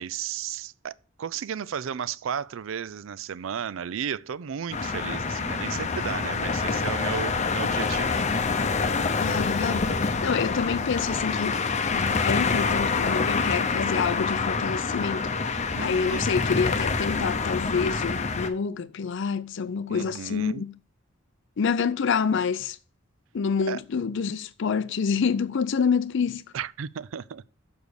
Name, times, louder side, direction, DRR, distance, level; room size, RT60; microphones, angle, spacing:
voice 1, 0.0-8.2 15.7-16.3 19.9-20.6 23.7-23.8 26.5-27.4, right 8 dB, 70° right, 0.4 m, -34 dB
sound 1, 4.7-18.5, left 4 dB, 35° left, 0.7 m, -26 dB
voice 2, 9.2-11.6 11.9-15.3 15.8-20.7 21.6-22.8 23.3-26.4, left 6 dB, 65° left, 0.4 m, -27 dB
7.0 x 5.2 x 6.4 m
head